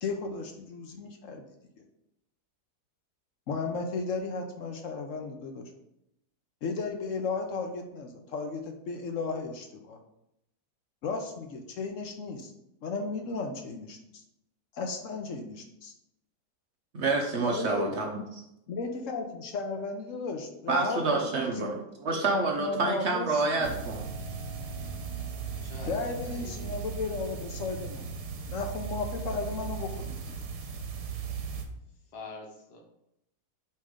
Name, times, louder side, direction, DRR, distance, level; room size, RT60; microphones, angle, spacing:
voice 1, 0.0-1.4 3.5-5.7 6.6-10.0 11.0-12.5 12.8-14.2 14.7-15.9 17.4-18.0 18.7-21.3 21.6-21.8 22.3-23.8 25.8-28.1 28.5-30.2, left 4 dB, 60° left, 4 dB, 1.0 m, -34 dB
voice 2, 16.9-18.2 20.7-24.0, right 3 dB, 55° right, 1 dB, 0.9 m, -28 dB
sound 1, 23.6-31.6, right 5 dB, 85° right, 1.4 m, -37 dB
voice 3, 25.6-26.8 32.1-32.8, left 3 dB, 80° left, 1 dB, 1.7 m, -45 dB
8.4 x 3.2 x 3.6 m, 0.82 s
omnidirectional pair, 1.7 m